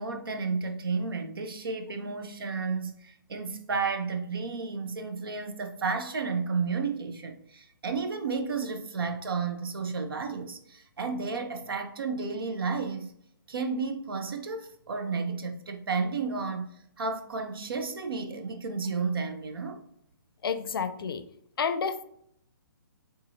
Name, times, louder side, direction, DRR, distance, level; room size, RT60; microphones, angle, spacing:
voice 1, 0.0-13.1 13.5-19.8, right 4 dB, 90° right, 0.6 m, -32 dB
voice 2, 20.4-21.2 21.6-22.0, left 6 dB, 90° left, 0.4 m, -30 dB
3.6 x 2.8 x 2.7 m
hypercardioid pair, 180°, 12 cm